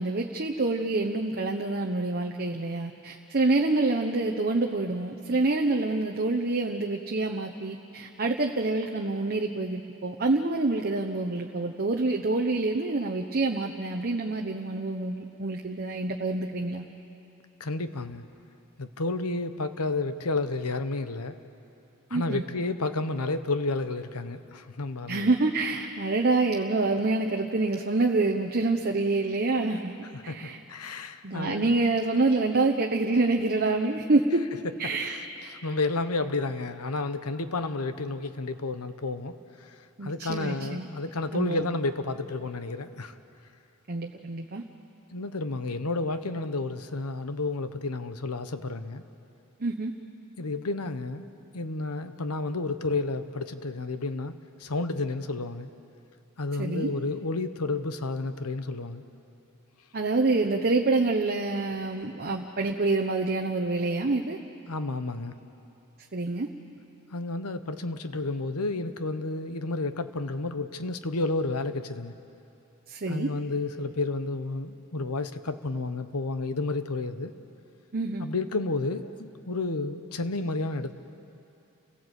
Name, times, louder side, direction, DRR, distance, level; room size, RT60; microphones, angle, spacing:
voice 1, 0.0-16.8 22.1-22.4 25.1-29.9 30.2-30.6 31.2-34.4 34.8-35.2 40.0-40.9 41.3-41.7 43.9-44.6 49.6-49.9 56.6-56.9 59.9-64.4 66.1-66.5 72.9-73.3 77.9-78.2, right 3 dB, 45° right, 2 dB, 1.0 m, -27 dB
voice 2, 17.6-18.2 18.8-21.3 22.1-25.3 30.3-31.7 34.8-39.3 40.0-43.1 45.1-49.0 50.4-51.3 51.5-54.3 54.6-55.7 56.4-59.0 64.7-65.3 67.1-72.1 73.1-77.3 78.2-80.9, left 3 dB, 85° left, 10 dB, 1.1 m, -31 dB
29.5 x 17.0 x 8.2 m, 2.8 s
head